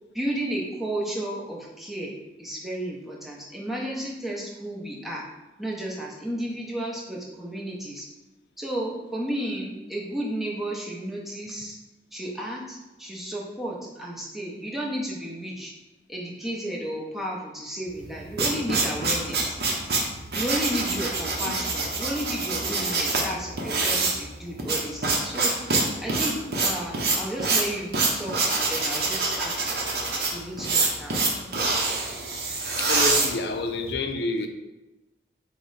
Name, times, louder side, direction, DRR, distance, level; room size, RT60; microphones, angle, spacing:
voice 1, 0.1-5.2 5.6-8.1 8.6-11.8 12.1-15.7 16.1-19.6 20.3-29.5 30.3-31.5, right 1 dB, ahead, -4 dB, 0.6 m, -33 dB
sound 1, 18.0-33.9, right 3 dB, 60° right, 0.6 m, -26 dB
voice 2, 32.8-34.5, left 3 dB, 65° left, 6 dB, 0.4 m, -28 dB
4.5 x 2.1 x 3.8 m, 1.1 s
head